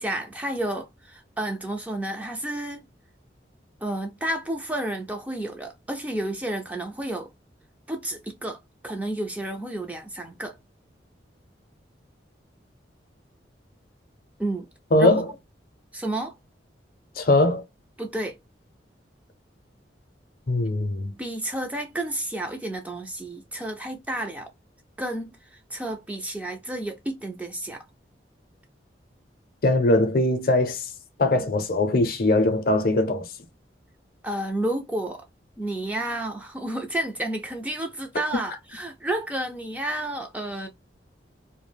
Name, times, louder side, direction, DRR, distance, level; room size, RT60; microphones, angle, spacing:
voice 1, 0.0-2.8 3.8-7.3 7.9-8.6 8.8-10.6 14.4-14.7 15.0-15.2 15.9-16.4 18.0-18.3 21.2-24.5 25.0-27.8 34.2-35.2 35.6-40.7, right 1 dB, 10° right, 0.3 m, -31 dB
voice 2, 14.9-15.3 17.2-17.6 20.5-21.1 29.6-30.9 31.2-33.2, left 2 dB, 50° left, 0.5 m, -21 dB
2.3 x 2.1 x 3.2 m
head